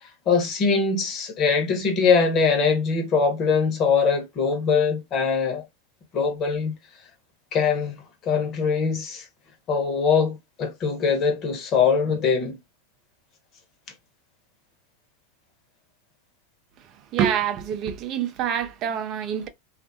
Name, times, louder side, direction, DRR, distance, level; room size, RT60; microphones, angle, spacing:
voice 1, 0.0-5.6 6.1-6.8 7.5-8.0 8.2-9.3 9.7-12.6, left 5 dB, 35° left, 1.0 m, -22 dB
voice 2, 17.1-19.5, right 9 dB, 40° right, 0.5 m, -26 dB
2.6 x 2.4 x 2.6 m
supercardioid pair, 125°, 0 cm